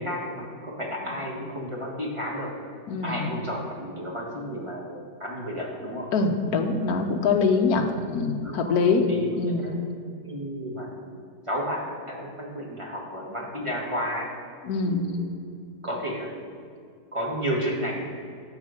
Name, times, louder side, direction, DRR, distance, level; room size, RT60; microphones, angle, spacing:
voice 1, 0.0-2.5 3.0-6.1 8.4-9.7 10.2-11.2 11.5-14.3 14.8-15.3 15.8-16.4 17.1-18.0, equal, 20° right, -3 dB, 1.3 m, -32 dB
voice 2, 2.9-3.4 6.1-9.0 9.4-9.7 14.6-15.0, left 4 dB, 65° left, 5 dB, 1.1 m, -24 dB
12.0 x 4.1 x 6.4 m, 2.3 s
omnidirectional pair, 2.0 m